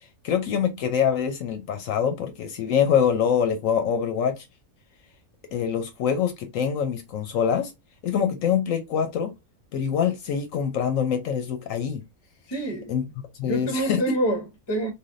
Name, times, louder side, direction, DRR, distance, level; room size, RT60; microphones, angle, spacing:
voice 1, 0.2-4.5 5.5-7.7 8.0-9.3 9.7-12.0 12.9-13.0 13.4-14.2, left 8 dB, 70° left, 0.9 m, -24 dB
voice 2, 12.5-12.9 13.4-14.9, right 1 dB, 25° left, 0.7 m, -27 dB
3.4 x 2.5 x 2.5 m
omnidirectional pair, 1.5 m